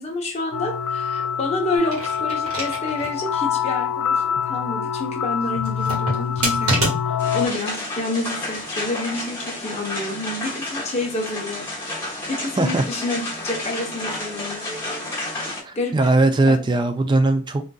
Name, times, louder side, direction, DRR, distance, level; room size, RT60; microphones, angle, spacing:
voice 1, 0.0-15.1 15.7-16.1 16.4-16.6, left 2 dB, 30° left, 0 dB, 0.8 m, -29 dB
sound 1, 0.5-7.5, left 7 dB, 80° left, 0.3 m, -25 dB
sound 2, 1.8-3.2 3.6-3.7 5.6-7.4 8.2-8.7, right 1 dB, 75° right, 1.5 m, -27 dB
sound 3, 7.2-15.6, left 2 dB, 10° left, 1.1 m, -31 dB
voice 2, 15.6-17.6, right 2 dB, 20° right, 8 dB, 0.3 m, -19 dB
3.8 x 2.6 x 2.3 m, 0.34 s
head